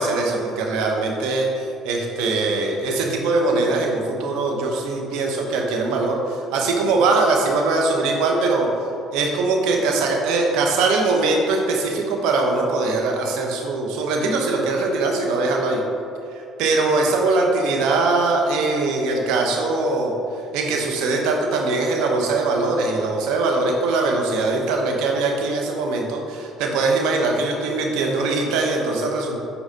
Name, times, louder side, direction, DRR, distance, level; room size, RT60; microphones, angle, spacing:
voice 1, 0.0-8.7 9.1-15.8 16.6-20.1 20.5-29.4, right 3 dB, 75° right, 1 dB, 0.9 m, -21 dB
8.2 x 4.7 x 2.8 m, 2.6 s
hypercardioid pair, 65°, 0 cm